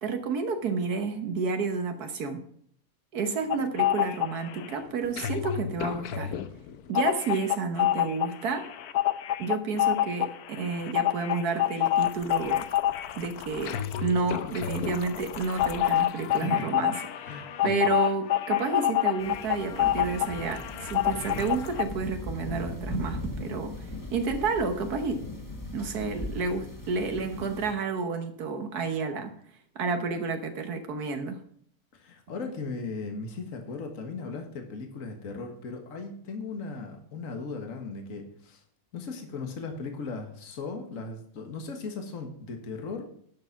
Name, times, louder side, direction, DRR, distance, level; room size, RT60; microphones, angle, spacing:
voice 1, 0.0-2.4 3.1-6.4 6.9-8.7 9.4-12.7 13.2-17.3 17.6-23.7 24.1-25.3 25.7-29.3 29.8-31.4, right 4 dB, 75° right, 7 dB, 1.6 m, -30 dB
sound 1, 3.5-4.7 5.0-21.8, left 12 dB, 75° left, 1.2 m, -27 dB
voice 2, 16.3-16.7 17.3-17.9 31.9-38.6 38.9-43.1, left 4 dB, 55° left, 4 dB, 1.9 m, -37 dB
sound 2, 19.2-27.7, left 1 dB, 10° left, 2.2 m, -38 dB
11.5 x 6.8 x 5.8 m, 0.64 s
omnidirectional pair, 1.7 m